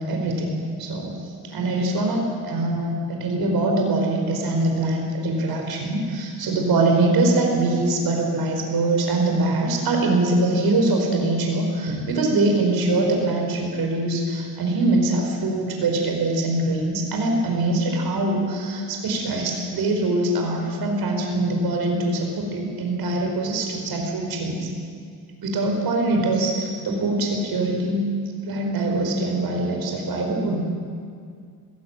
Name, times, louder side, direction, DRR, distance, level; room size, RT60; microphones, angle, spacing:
voice 1, 0.0-24.7 25.4-28.0 28.4-30.6, right 2 dB, 70° right, 2 dB, 5.0 m, -23 dB
20.5 x 16.0 x 9.1 m, 2.2 s
cardioid pair, 125°, 38 cm